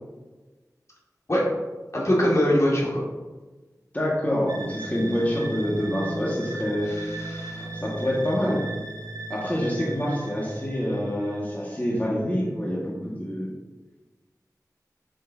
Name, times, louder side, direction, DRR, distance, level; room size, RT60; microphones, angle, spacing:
voice 1, 1.9-3.0 6.9-7.7, equal, 50° left, -4 dB, 2.0 m, -23 dB
voice 2, 3.9-6.9 7.6-8.6 9.3-13.5, equal, 25° left, -5 dB, 1.7 m, -26 dB
sound 1, 4.5-12.0, right 2 dB, 75° right, 0.8 m, -37 dB
7.5 x 6.6 x 2.7 m, 1.2 s
wide cardioid pair, 55°, 7 cm